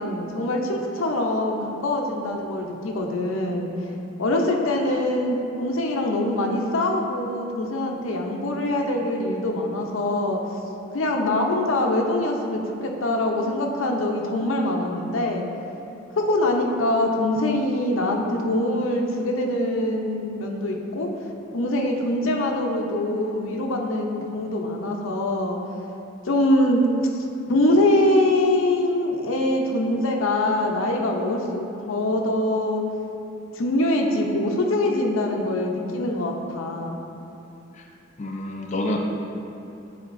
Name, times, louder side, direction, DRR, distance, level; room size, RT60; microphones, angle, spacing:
voice 1, 0.0-3.7 4.2-10.4 10.9-15.4 16.2-21.1 21.5-25.6 26.2-26.8 27.5-32.8 33.5-37.0, left 1 dB, 90° left, 1 dB, 0.6 m, -23 dB
voice 2, 38.2-39.0, left 1 dB, 35° left, 1 dB, 0.4 m, -27 dB
9.1 x 4.4 x 2.5 m, 2.8 s
head